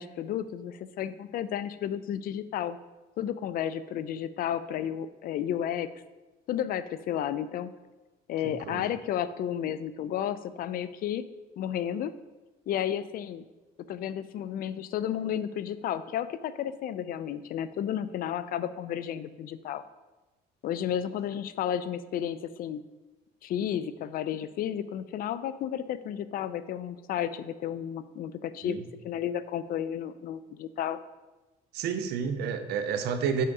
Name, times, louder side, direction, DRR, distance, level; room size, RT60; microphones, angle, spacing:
voice 1, 0.0-2.8 3.2-5.9 6.5-7.7 8.3-11.2 11.6-12.1 12.7-13.4 13.9-19.8 20.6-22.8 23.4-28.8 29.0-31.0, left 10 dB, 60° left, 14 dB, 0.4 m, -32 dB
voice 2, 8.4-8.9 28.6-28.8 31.7-33.4, right 6 dB, 80° right, 9 dB, 0.7 m, -30 dB
5.6 x 4.7 x 5.3 m, 1.2 s
cardioid pair, 110°, 17 cm